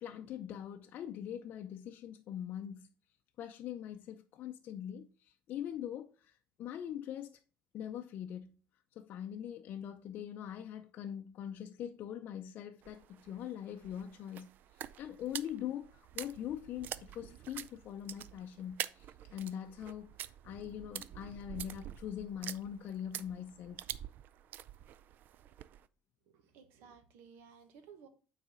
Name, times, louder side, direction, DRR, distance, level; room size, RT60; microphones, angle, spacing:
voice 1, 0.0-2.9 3.4-7.4 7.7-8.5 9.0-14.5 15.0-20.1 20.4-23.8, left 10 dB, 50° left, 0.5 m, -42 dB
sound 1, 12.8-25.9, right 11 dB, 55° right, 0.3 m, -47 dB
voice 2, 26.3-28.1, right 6 dB, 85° right, 1.3 m, -57 dB
9.0 x 4.1 x 3.7 m
cardioid pair, 145°, 4 cm